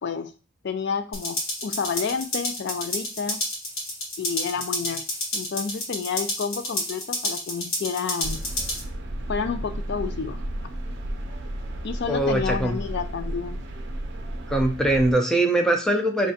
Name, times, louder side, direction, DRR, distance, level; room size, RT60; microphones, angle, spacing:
voice 1, 0.6-3.4 4.2-5.0 5.3-8.4 9.3-10.4 11.8-13.6, left 6 dB, 55° left, 10 dB, 0.4 m, -30 dB
sound 1, 1.1-8.8, left 1 dB, 80° left, 1.6 m, -30 dB
sound 2, 8.2-15.1, right 1 dB, 60° right, 0.6 m, -33 dB
voice 2, 12.1-12.8 14.5-16.3, right 1 dB, 5° left, 3 dB, 0.5 m, -22 dB
4.8 x 3.3 x 2.7 m, 0.36 s
head